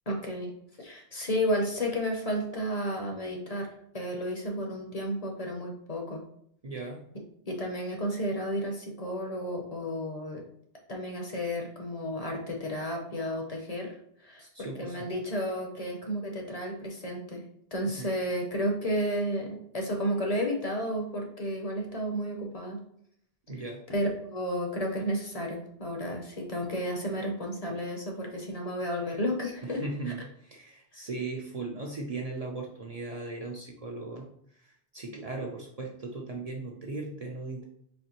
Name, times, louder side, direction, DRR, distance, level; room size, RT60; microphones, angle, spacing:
voice 1, 0.1-0.5 0.8-6.2 7.4-10.4 10.9-13.9 14.2-17.4 17.7-22.8 23.9-29.8, equal, 40° left, 1 dB, 0.7 m, -32 dB
voice 2, 6.6-7.0 14.4-15.1 17.8-18.1 23.5-23.8 29.6-37.6, right 3 dB, 45° right, -1 dB, 0.6 m, -38 dB
4.2 x 3.0 x 2.9 m, 0.70 s
omnidirectional pair, 1.0 m